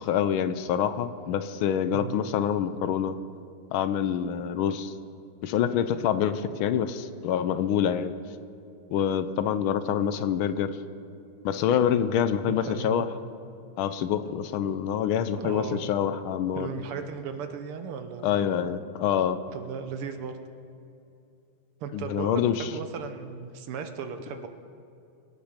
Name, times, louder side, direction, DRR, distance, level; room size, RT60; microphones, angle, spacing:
voice 1, 0.0-3.2 3.7-4.9 5.4-8.1 8.9-10.8 11.4-13.1 13.8-16.7 18.2-19.4 21.9-22.7, left 9 dB, 75° left, 12 dB, 1.5 m, -26 dB
voice 2, 12.7-13.0 15.4-15.8 16.5-18.3 19.5-20.3 21.8-24.5, right 6 dB, 85° right, 7 dB, 1.9 m, -36 dB
24.5 x 9.0 x 5.1 m, 2.6 s
omnidirectional pair, 2.4 m